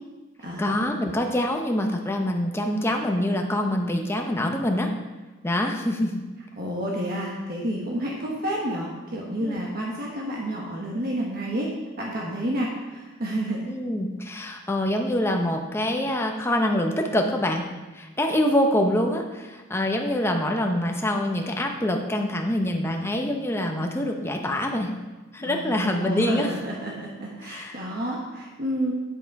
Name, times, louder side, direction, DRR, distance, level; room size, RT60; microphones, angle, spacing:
voice 1, 0.6-4.9 5.4-6.2 9.4-9.6 13.7-17.6 17.9-24.9 25.3-26.5 27.4-27.8, left 1 dB, 10° left, 2 dB, 0.8 m, -25 dB
voice 2, 6.6-11.7 12.0-13.7 25.4-28.9, right 1 dB, 45° right, -2 dB, 1.3 m, -30 dB
9.1 x 7.7 x 4.7 m, 1.2 s
head